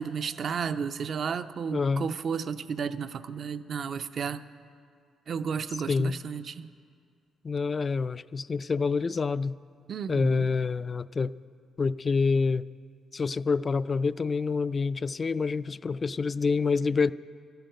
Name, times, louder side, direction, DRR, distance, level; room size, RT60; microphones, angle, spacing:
voice 1, 0.0-4.4 5.3-6.7 9.9-10.5, right 6 dB, 55° right, 12 dB, 0.5 m, -33 dB
voice 2, 1.7-2.1 5.9-6.2 7.4-9.6 10.1-11.3 11.8-12.6 13.1-17.1, left 4 dB, 35° left, 16 dB, 0.3 m, -27 dB
12.5 x 10.5 x 8.9 m, 2.2 s
cardioid pair, 90°, 0 cm